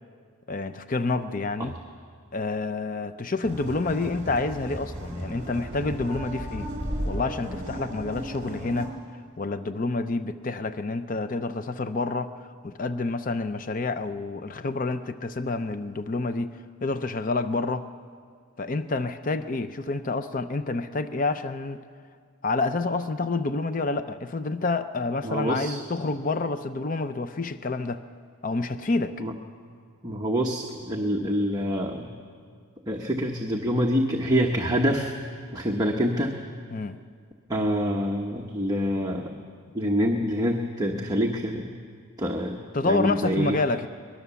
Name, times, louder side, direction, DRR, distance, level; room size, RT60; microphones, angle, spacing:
voice 1, 0.5-1.8 2.3-6.7 7.0-9.0 9.4-12.3 12.6-17.9 18.6-21.8 22.4-28.0 28.4-29.2 36.7-37.0 42.7-43.9, left 3 dB, 35° left, 11 dB, 0.6 m, -28 dB
sound 1, 3.4-8.9, equal, 35° right, 4.6 m, -35 dB
voice 2, 25.2-25.8 29.2-29.3 30.0-32.1 32.9-35.1 35.5-36.3 37.5-39.4 39.7-41.7 42.2-43.6, equal, 15° right, 0 dB, 1.0 m, -26 dB
23.5 x 20.5 x 7.0 m, 2.1 s
head